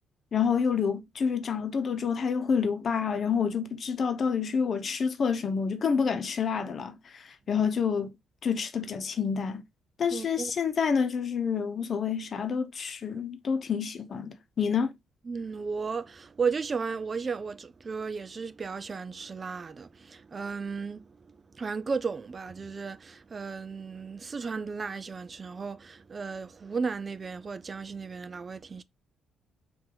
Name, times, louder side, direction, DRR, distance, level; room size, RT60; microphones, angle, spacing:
voice 1, 0.3-8.1 8.4-9.6 10.0-14.9, left 6 dB, 50° left, 0.8 m, -28 dB
voice 2, 10.1-10.5 15.3-21.1 21.5-28.8, right 5 dB, 35° right, 0.4 m, -34 dB
4.6 x 2.7 x 3.8 m
cardioid pair, 90°, 0 cm